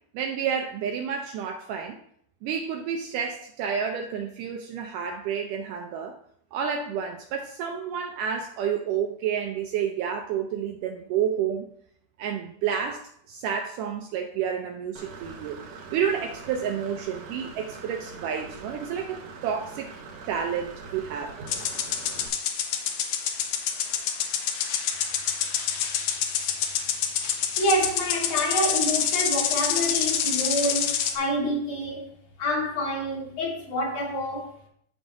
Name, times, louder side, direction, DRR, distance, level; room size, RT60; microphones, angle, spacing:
voice 1, 0.1-2.0 2.4-6.2 6.5-11.7 12.2-19.9 20.3-21.3, right 7 dB, 85° right, 3 dB, 1.9 m, -30 dB
Engine / Mechanisms, 15.0-22.3, right 4 dB, 65° right, 1.9 m, -42 dB
sound 1, 21.5-31.2, left 8 dB, 85° left, 1.7 m, -27 dB
voice 2, 27.6-32.1 32.4-34.5, equal, 60° left, -2 dB, 2.5 m, -27 dB
14.0 x 5.0 x 2.6 m, 0.66 s
omnidirectional pair, 4.3 m